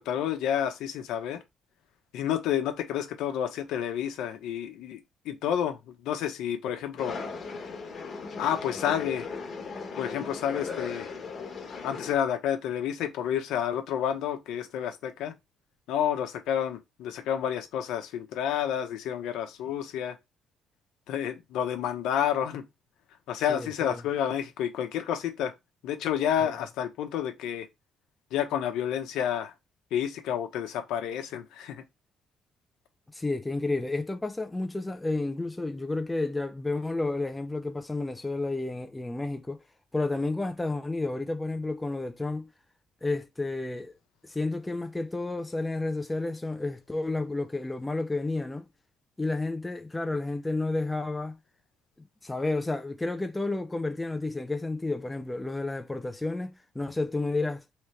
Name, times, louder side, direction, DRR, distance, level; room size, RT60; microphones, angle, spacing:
voice 1, 0.0-1.4 2.1-5.0 5.2-7.2 8.4-9.3 10.0-11.1 11.8-15.3 15.9-20.2 21.1-22.7 23.3-25.5 25.8-27.7 28.3-29.5 29.9-31.8, left 9 dB, 85° left, 0.8 m, -30 dB
sound 1, 7.0-12.1, left 4 dB, 35° left, 1.1 m, -37 dB
voice 2, 23.5-24.0 26.4-26.5 33.1-39.6 39.9-42.5 43.0-43.9 44.2-48.7 49.2-51.4 52.0-57.6, left 2 dB, 10° left, 0.4 m, -31 dB
3.3 x 2.9 x 3.3 m
cardioid pair, 145°, 0 cm